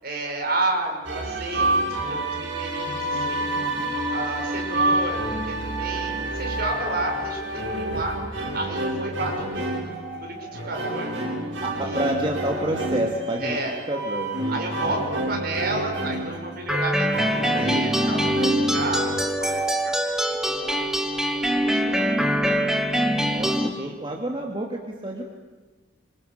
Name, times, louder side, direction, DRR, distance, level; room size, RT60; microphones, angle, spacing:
voice 1, 0.0-3.6 4.1-5.2 5.4-11.1 11.8-12.1 13.4-13.8 14.5-19.9 20.4-22.4 23.4-23.9, right 2 dB, 55° right, 2 dB, 6.3 m, -32 dB
sound 1, 1.0-19.1, right 1 dB, 80° right, 6.7 m, -28 dB
voice 2, 3.7-4.1 11.8-13.6 13.9-14.5 14.8-14.9 23.2-25.2, right 1 dB, 25° right, -1 dB, 2.4 m, -29 dB
sound 2, 16.7-23.7, equal, 5° right, 1.9 m, -23 dB
26.0 x 25.5 x 6.7 m, 1.3 s
head